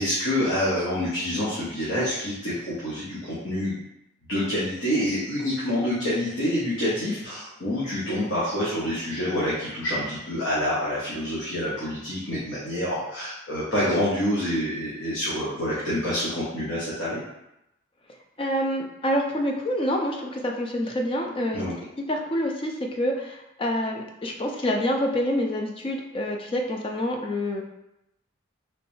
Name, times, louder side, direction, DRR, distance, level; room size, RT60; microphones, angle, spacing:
voice 1, 0.0-3.7 4.3-17.2 21.5-21.7, equal, 65° left, -9 dB, 0.9 m, -27 dB
voice 2, 18.4-21.6 22.1-27.6, equal, 25° left, 2 dB, 0.4 m, -27 dB
3.3 x 3.0 x 3.1 m, 0.88 s
head